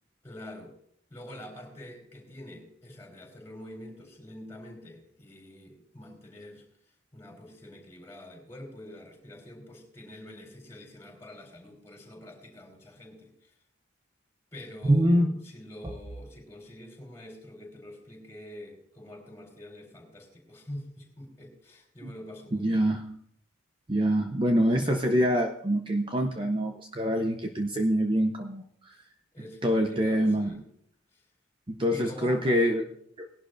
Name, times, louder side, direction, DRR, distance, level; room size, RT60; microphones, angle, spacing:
voice 1, 0.2-0.8 1.1-6.6 7.1-13.5 14.5-22.8 28.9-29.0 29.3-30.6 31.1-31.2 31.9-32.6, left 1 dB, 15° left, 0 dB, 4.3 m, -46 dB
voice 2, 14.9-15.3 22.6-23.2 23.9-29.0 29.6-30.5 31.7-32.8 33.2-33.3, equal, 25° right, 4 dB, 0.7 m, -25 dB
19.5 x 11.5 x 2.6 m, 0.67 s
head